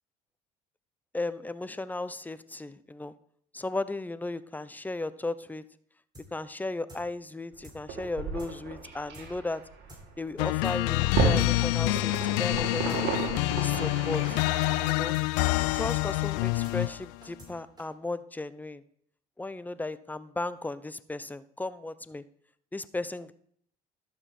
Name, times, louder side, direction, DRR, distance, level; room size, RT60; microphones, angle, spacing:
voice 1, 1.1-3.1 3.5-5.6 6.3-9.6 10.2-12.1 12.4-13.1 13.6-14.4 14.9-15.2 15.7-18.8 19.4-22.2 22.7-23.3, left 2 dB, 10° left, 15 dB, 0.6 m, -35 dB
sound 1, 6.1-6.3 6.5-6.6 6.9-7.0 7.3-7.4 7.6-7.8 8.0-8.1 8.4-8.5 8.8-8.9 9.1-9.3 9.5-9.6 9.9-10.0 10.3-10.4 10.6-10.8 11.0-11.5 11.8-11.9 12.1-12.3 12.5-12.6 12.9-13.0 13.3-13.4 13.6-13.8 14.0-14.1 14.4-14.5 14.8-14.9 15.1-15.3 15.5-15.6 15.9-16.0 16.3-16.4 16.6-16.8 17.0-17.5 17.8-17.9, equal, 20° right, 4.5 m, -49 dB
sound 2, 7.5-14.9, right 4 dB, 65° right, 2.5 m, -34 dB
sound 3, 10.4-17.1, left 21 dB, 80° left, 0.4 m, -27 dB
12.0 x 7.0 x 4.3 m, 0.65 s
supercardioid pair, 80°, 20 cm